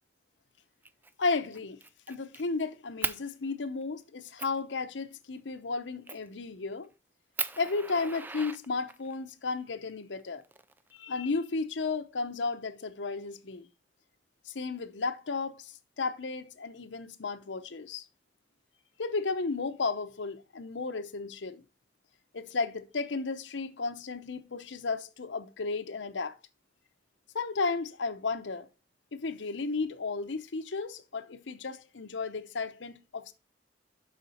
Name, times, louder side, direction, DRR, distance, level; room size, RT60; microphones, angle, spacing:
Fire, 0.8-1.1 1.5-2.4 3.0-3.2 3.8-3.9 4.4-4.6 6.1-6.3 6.8-6.9 7.4-9.1 10.2-11.2, right 4 dB, 10° right, 0.4 m, -37 dB
voice 1, 1.2-1.8 2.1-6.9 7.6-10.4 10.9-13.7 14.5-18.0 19.0-21.6 22.3-26.4 27.3-28.7 29.1-33.3, left 4 dB, 85° left, 0.7 m, -34 dB
7.2 x 5.7 x 4.1 m
head